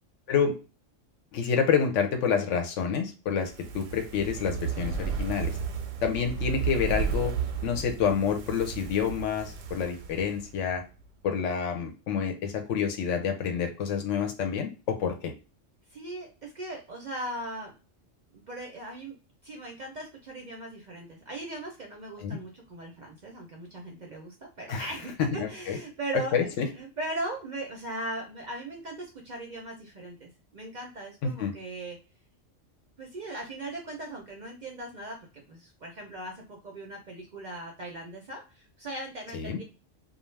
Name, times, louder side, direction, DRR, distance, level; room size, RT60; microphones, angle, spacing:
voice 1, 1.3-5.5 6.0-7.3 7.6-10.8 11.2-15.3 22.2-22.4 24.7-24.9 25.2-25.8 26.3-26.7 31.2-31.5 39.3-39.6, left 7 dB, 75° left, 5 dB, 0.9 m, -28 dB
Fire, 3.4-10.7 11.0-11.1, right 6 dB, 85° right, 0.9 m, -33 dB
voice 2, 15.9-17.7 18.3-19.2 19.4-26.5 26.7-32.0 33.0-35.2 35.5-39.6, right 1 dB, 50° right, 0 dB, 0.6 m, -39 dB
2.4 x 2.3 x 3.1 m, 0.32 s
omnidirectional pair, 1.3 m